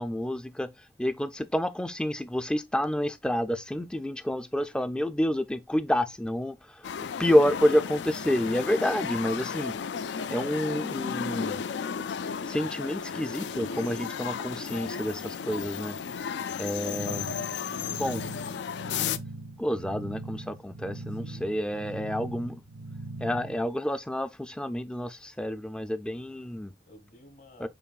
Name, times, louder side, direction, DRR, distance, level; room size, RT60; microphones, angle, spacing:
voice 1, 0.0-6.9 7.2-9.8 10.3-11.6 12.5-16.0 16.6-17.3 18.0-18.2 19.6-22.6 23.2-26.7 27.6-27.7, left 1 dB, 5° left, 0.3 m, -29 dB
sound 1, 6.8-19.2, left 7 dB, 90° left, 0.4 m, -34 dB
voice 2, 16.2-16.7 21.1-22.3 26.8-27.7, equal, 45° left, 1.3 m, -54 dB
sound 2, 16.9-23.7, right 2 dB, 60° right, 0.5 m, -41 dB
6.8 x 3.0 x 2.3 m
head